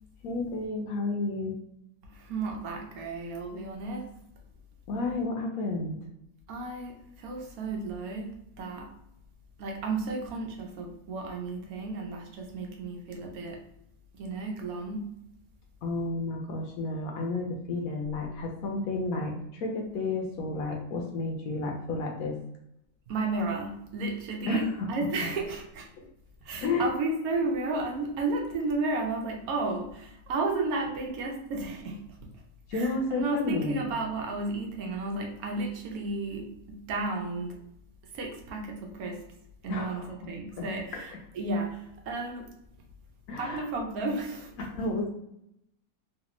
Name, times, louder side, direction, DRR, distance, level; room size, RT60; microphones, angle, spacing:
voice 1, 0.2-1.6 4.9-6.0 15.8-22.4 24.5-24.9 26.6-26.9 32.7-33.9 39.7-40.7 40.9-41.1 43.3-43.7 44.6-45.1, left 2 dB, 70° left, 2 dB, 1.0 m, -31 dB
voice 2, 2.0-4.1 6.5-8.9 9.6-13.6 14.1-15.1 23.1-24.6 24.9-25.9 26.4-32.0 32.7-37.6 38.1-39.2 39.6-42.5 43.4-44.5, right 3 dB, 70° right, 1 dB, 1.1 m, -33 dB
3.2 x 2.5 x 2.9 m, 0.78 s
omnidirectional pair, 1.7 m